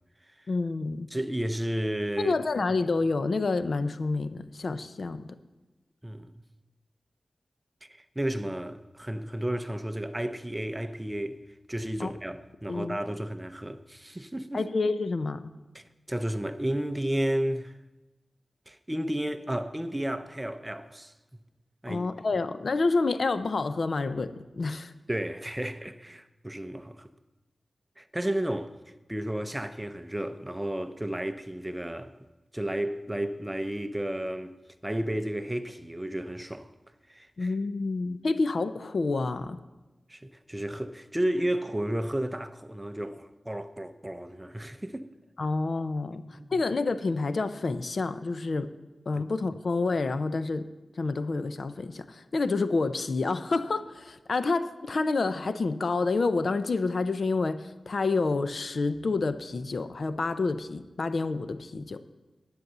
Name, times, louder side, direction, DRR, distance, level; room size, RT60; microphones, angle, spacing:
voice 1, 0.5-1.1 2.2-5.3 12.0-12.1 12.7-13.0 14.5-15.5 21.9-24.9 37.4-39.6 45.4-46.2 46.5-48.7 49.1-50.7 51.0-62.0, left 3 dB, 65° left, 0.6 m, -28 dB
voice 2, 1.1-2.4 6.0-6.4 7.8-11.4 11.7-14.6 15.7-17.7 18.7-21.1 21.8-22.0 25.1-27.1 28.0-28.8 29.1-32.1 32.5-34.5 34.8-36.7 37.1-37.5 40.1-45.1 46.1-46.6 49.1-49.2, right 1 dB, 15° right, 0.6 m, -32 dB
10.5 x 8.8 x 6.7 m
wide cardioid pair, 90°, 0 cm